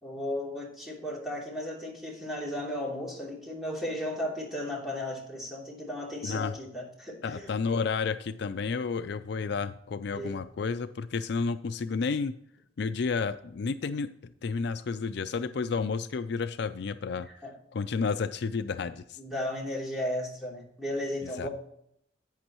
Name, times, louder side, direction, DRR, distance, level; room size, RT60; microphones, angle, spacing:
voice 1, 0.0-7.6 10.1-10.4 17.4-17.5 19.2-21.5, left 1 dB, ahead, -4 dB, 2.9 m, -35 dB
voice 2, 6.2-6.6 7.2-12.3 12.8-14.1 14.4-17.3 17.7-19.2 21.2-21.5, left 5 dB, 60° left, 11 dB, 0.4 m, -31 dB
11.5 x 8.8 x 3.0 m, 0.72 s
head